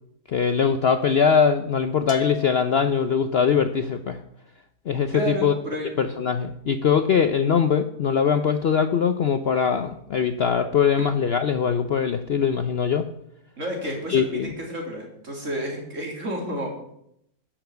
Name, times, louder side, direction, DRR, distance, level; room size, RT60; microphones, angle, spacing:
voice 1, 0.3-4.2 4.9-5.5 6.0-13.1 14.1-14.5, left 6 dB, 55° left, 9 dB, 0.7 m, -22 dB
Bell, 2.1-3.4, left 10 dB, 85° left, 1.5 m, -36 dB
voice 2, 5.1-6.0 13.6-16.7, right 1 dB, 55° right, -1 dB, 3.7 m, -31 dB
11.5 x 6.9 x 8.1 m, 0.76 s
omnidirectional pair, 1.6 m